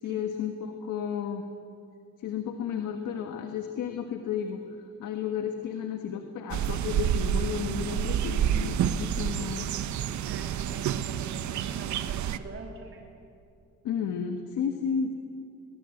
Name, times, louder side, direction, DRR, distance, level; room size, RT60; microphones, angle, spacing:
voice 1, 0.0-1.4 2.2-4.6 5.0-9.7 13.8-15.1, left 7 dB, 80° left, 5 dB, 1.6 m, -32 dB
sound 1, 6.5-12.4, right 10 dB, 70° right, 1.0 m, -29 dB
voice 2, 10.2-13.0, right 4 dB, 45° right, 0 dB, 3.2 m, -44 dB
23.0 x 21.0 x 8.0 m, 2.4 s
cardioid pair, 90°, 30 cm